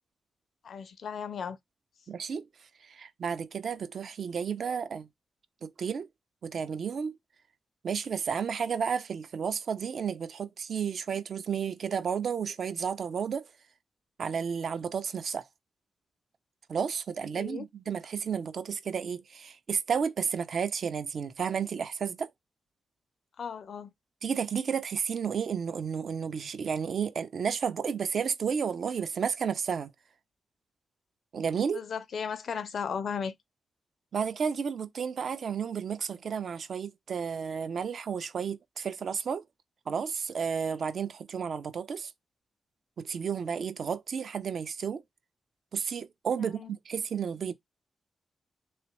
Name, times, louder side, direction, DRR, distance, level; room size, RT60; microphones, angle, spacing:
voice 1, 0.6-1.6 17.4-17.6 23.4-23.9 31.7-33.3 46.4-46.7, left 6 dB, 70° left, 0.5 m, -35 dB
voice 2, 2.1-2.5 2.8-5.1 5.6-6.1 6.4-7.2 7.8-13.5 14.2-15.4 16.7-22.3 24.2-29.9 31.3-31.8 34.1-39.4 39.9-42.1 43.0-45.0 45.7-47.5, right 6 dB, 70° right, 0.5 m, -32 dB
3.3 x 2.9 x 3.0 m
supercardioid pair, 50°, 0 cm